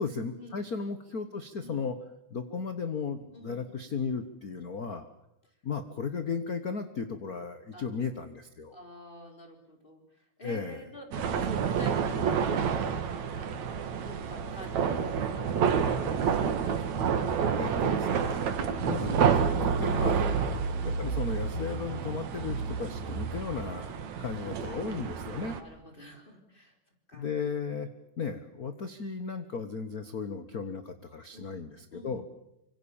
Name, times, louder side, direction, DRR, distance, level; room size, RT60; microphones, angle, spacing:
voice 1, 0.0-2.0 2.3-5.1 5.6-8.8 10.4-10.8 17.5-18.4 18.8-20.3 20.8-25.6 27.1-27.9 28.2-32.2, left 5 dB, 55° left, 10 dB, 1.0 m, -35 dB
voice 2, 3.3-3.7 7.7-8.0 8.7-10.0 10.4-13.7 14.0-16.1 16.4-17.1 18.4-18.9 20.2-20.5 24.6-26.7 27.1-27.3 31.3-31.5 31.9-32.2, equal, 15° left, 3 dB, 3.9 m, -49 dB
sound 1, 11.1-25.6, right 6 dB, 65° right, 3.0 m, -29 dB
26.0 x 24.0 x 7.2 m, 0.85 s
omnidirectional pair, 3.6 m